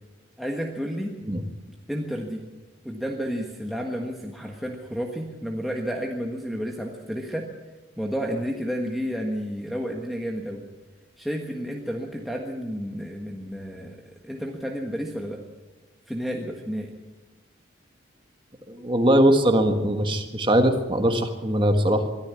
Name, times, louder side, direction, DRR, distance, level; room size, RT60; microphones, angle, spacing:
voice 1, 0.4-1.2 1.9-2.4 2.8-7.5 8.0-10.6 11.2-14.0 14.2-15.4 16.1-16.9, equal, ahead, -1 dB, 1.5 m, -31 dB
voice 2, 18.7-22.1, right 1 dB, 25° right, 6 dB, 1.6 m, -21 dB
22.5 x 13.5 x 8.4 m, 1.2 s
head